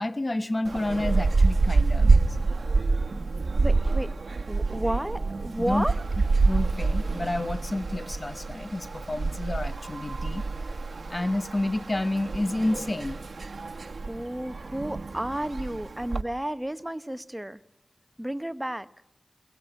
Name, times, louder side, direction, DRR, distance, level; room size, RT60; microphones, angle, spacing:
voice 1, 0.0-2.4 5.7-5.8 6.4-10.4 11.1-13.2, left 1 dB, 35° left, 1.2 m, -29 dB
sound 1, 0.6-16.2, right 3 dB, 80° right, 1.0 m, -27 dB
voice 2, 3.6-4.1 4.5-6.0 14.1-17.6 18.2-18.9, right 1 dB, 15° right, 1.0 m, -32 dB
22.5 x 18.5 x 9.0 m
wide cardioid pair, 55°, 0 cm